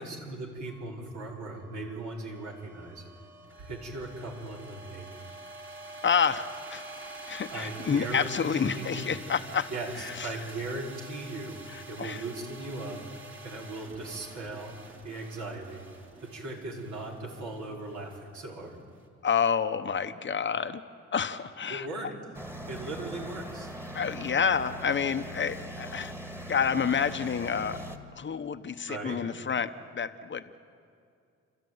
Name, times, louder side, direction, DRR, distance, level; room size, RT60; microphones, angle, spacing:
voice 1, 0.0-3.0 3.6-5.2 7.5-8.4 8.6-9.0 9.7-14.7 15.0-15.8 16.2-18.8 21.7-22.1 22.7-23.7 28.9-29.2, right 2 dB, 70° right, -2 dB, 5.4 m, -38 dB
sound 1, 0.7-19.0, right 2 dB, 40° right, 3.4 m, -47 dB
voice 2, 6.0-6.8 7.3-9.7 10.0-10.3 11.7-12.2 19.2-20.8 21.1-22.1 23.9-26.1 26.5-27.8 28.2-30.4, left 6 dB, 40° left, 10 dB, 0.9 m, -29 dB
sound 2, 22.3-28.0, right 1 dB, 10° right, 2.0 m, -41 dB
29.5 x 13.5 x 9.4 m, 2.4 s
cardioid pair, 90°, 30 cm